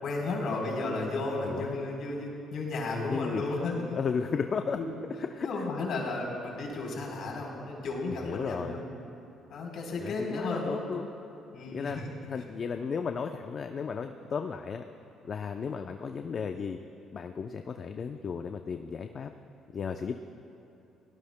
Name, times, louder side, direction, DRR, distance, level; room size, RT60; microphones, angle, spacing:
voice 1, 0.0-4.0 4.7-5.0 5.4-8.8 9.5-10.8 11.5-12.1, left 2 dB, 65° left, -1 dB, 3.7 m, -33 dB
voice 2, 1.4-1.8 3.1-4.8 5.3-5.5 8.1-8.8 10.0-11.1 11.7-12.0 12.2-14.8 15.2-16.8 17.1-19.3 19.7-20.2, left 6 dB, 45° left, 6 dB, 0.5 m, -34 dB
30.0 x 18.0 x 2.2 m, 2.9 s
cardioid pair, 90°, 0 cm